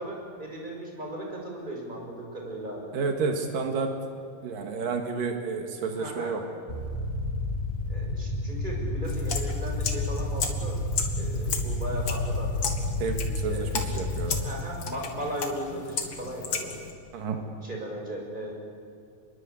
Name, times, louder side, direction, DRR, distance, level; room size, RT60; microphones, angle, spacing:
voice 1, 0.0-2.9 5.9-6.3 7.9-10.8 11.2-12.7 13.5-14.0 14.4-16.7 17.6-18.5, right 1 dB, 15° right, 0 dB, 6.3 m, -37 dB
voice 2, 2.9-3.9 4.4-6.4 13.0-14.4 17.1-17.4, right 4 dB, 80° right, 4 dB, 3.6 m, -30 dB
sound 1, 6.7-14.4, left 2 dB, 20° left, 2.5 m, -30 dB
sound 2, 9.0-16.9, left 5 dB, 45° left, 2.9 m, -35 dB
29.5 x 22.0 x 8.6 m, 2.5 s
omnidirectional pair, 3.8 m